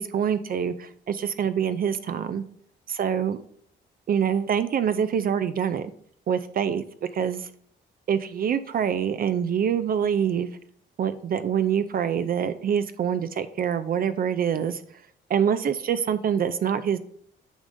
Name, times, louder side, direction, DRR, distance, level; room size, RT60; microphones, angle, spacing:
voice 1, 0.0-2.4 2.9-3.4 4.1-5.9 6.3-6.8 7.1-7.5 8.1-10.5 11.0-14.8 15.3-17.0, right 8 dB, 45° right, 11 dB, 0.4 m, -25 dB
8.7 x 4.9 x 2.6 m, 0.63 s
cardioid pair, 90°, 20 cm